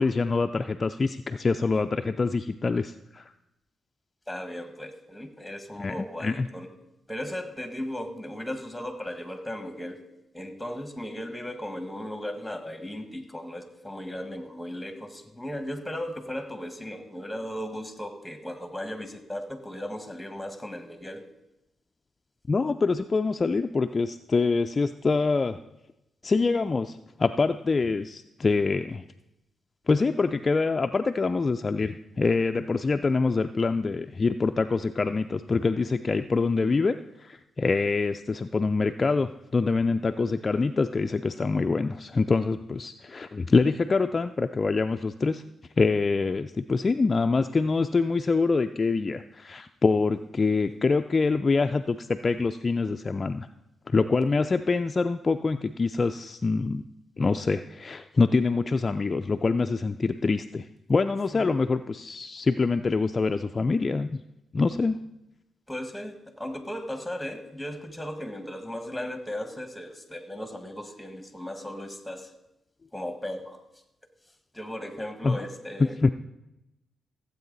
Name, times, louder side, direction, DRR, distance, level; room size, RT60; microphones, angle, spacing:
voice 1, 0.0-3.2 5.8-6.5 22.5-25.6 26.2-29.0 29.9-45.4 45.8-53.5 53.9-56.8 57.2-64.2 64.5-65.0 75.2-75.4 76.0-76.1, left 4 dB, 35° left, 8 dB, 0.4 m, -25 dB
voice 2, 4.3-6.7 7.1-10.0 10.3-21.2 61.3-61.5 65.7-72.3 72.9-73.6 74.5-76.0, left 1 dB, 5° left, 7 dB, 1.6 m, -36 dB
15.5 x 8.1 x 4.0 m, 0.91 s
cardioid pair, 75°, 0 cm